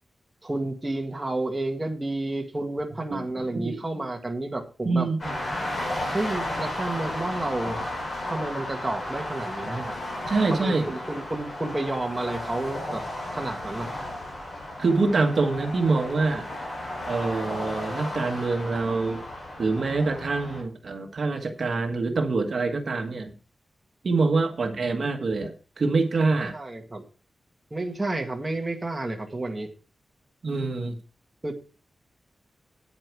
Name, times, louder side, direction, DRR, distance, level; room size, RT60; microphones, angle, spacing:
voice 1, 0.4-5.1 6.1-7.8 8.3-9.9 10.5-13.0 13.3-13.9 26.5-27.0 27.7-29.7 31.4-31.5, right 2 dB, 20° right, 2 dB, 1.8 m, -30 dB
voice 2, 4.8-5.3 10.2-10.9 14.8-16.5 17.1-19.2 19.6-23.3 24.0-26.6 30.4-31.0, right 3 dB, 55° right, 4 dB, 1.4 m, -25 dB
sound 1, 5.2-20.6, left 1 dB, 45° left, 6.1 m, -34 dB
9.3 x 8.9 x 4.6 m, 0.37 s
wide cardioid pair, 140°, 0 cm